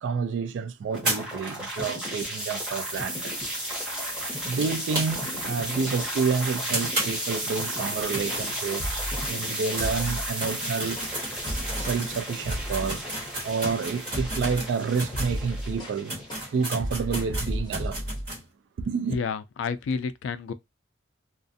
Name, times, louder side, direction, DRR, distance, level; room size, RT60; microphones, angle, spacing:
voice 1, 0.0-3.3 4.4-11.1 11.6-13.1 13.4-16.1 16.5-18.0 18.8-19.2, right 5 dB, 75° right, 0.3 m, -29 dB
sound 1, 0.9-16.9, equal, 5° right, 0.9 m, -33 dB
sound 2, 1.0-5.5 5.8-5.9 6.2-6.3 6.7-9.0 9.4-15.4 15.8-15.9 16.1-18.4, right 1 dB, 55° right, 1.3 m, -34 dB
sound 3, 7.7-8.0 8.3-8.5 8.8-9.3 9.7-10.7 11.0-11.2 11.5-12.0 12.4-13.3 13.6-13.9 14.1-14.7 15.0-16.0 16.3-16.5 16.8-18.3, equal, 25° left, 0.6 m, -34 dB
voice 2, 19.1-20.5, left 5 dB, 80° left, 0.3 m, -30 dB
2.4 x 2.4 x 2.6 m
head